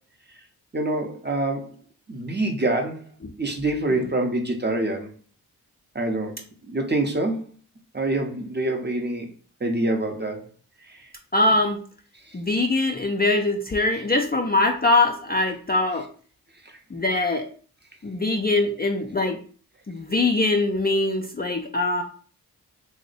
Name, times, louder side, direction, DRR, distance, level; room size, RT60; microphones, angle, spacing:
voice 1, 0.7-1.7 2.1-3.0 3.4-5.1 5.9-6.4 6.7-7.4 7.9-9.3 9.6-10.5, right 2 dB, 25° right, 4 dB, 0.7 m, -25 dB
voice 2, 11.3-11.8 12.3-16.0 16.9-17.5 18.0-19.4 19.9-22.0, left 2 dB, 25° left, 2 dB, 0.4 m, -22 dB
2.6 x 2.1 x 3.9 m, 0.42 s
cardioid pair, 40°, 41 cm